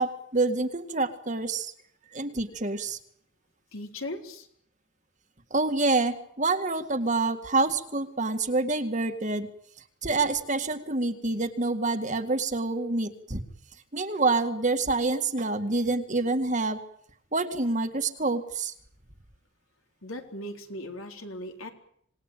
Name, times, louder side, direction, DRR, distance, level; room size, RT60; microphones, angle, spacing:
voice 1, 0.0-1.7 2.1-3.0 5.5-9.5 10.0-13.4 13.9-16.8 17.3-18.7, right 3 dB, 35° right, 7 dB, 2.0 m, -27 dB
voice 2, 3.7-4.5 20.0-21.7, left 1 dB, 75° left, 4 dB, 4.2 m, -38 dB
26.5 x 20.0 x 9.1 m, 0.68 s
head